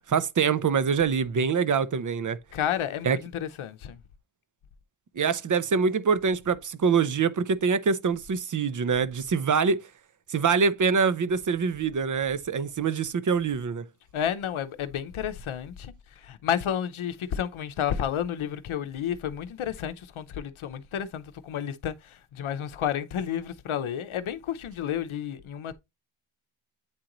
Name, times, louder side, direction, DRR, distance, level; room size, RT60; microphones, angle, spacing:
voice 1, 0.1-2.4 3.0-3.2 5.2-9.8 10.3-13.9, right 5 dB, 40° right, 0.5 m, -24 dB
voice 2, 2.5-4.0 14.1-15.9 16.2-25.8, left 9 dB, 75° left, 0.7 m, -31 dB
8.7 x 3.8 x 2.9 m
wide cardioid pair, 140°, 49 cm